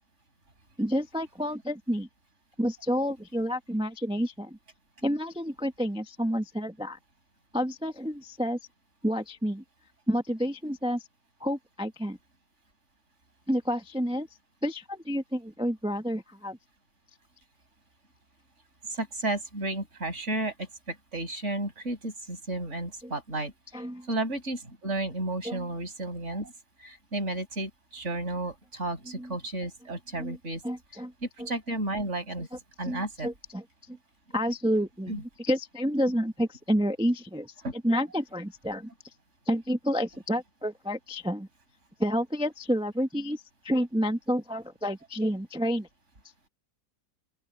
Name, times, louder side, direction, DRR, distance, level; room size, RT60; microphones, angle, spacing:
voice 1, 0.8-2.1 2.6-4.6 5.0-7.0 7.5-8.6 9.0-9.6 10.1-11.1 11.4-12.2 13.5-14.3 14.6-16.6 23.0-23.1 23.7-24.1 25.4-25.7 29.1-29.3 30.2-30.4 30.6-31.1 31.4-31.5 32.8-34.0 34.3-38.9 39.5-41.5 42.0-45.9, equal, 5° right, 1.0 m, -29 dB
voice 2, 18.9-23.5 24.1-26.5 26.8-30.6 31.2-32.5 32.8-33.3 35.1-35.2 37.6-37.7, right 2 dB, 40° right, 6.7 m, -33 dB
open air
omnidirectional pair, 1.9 m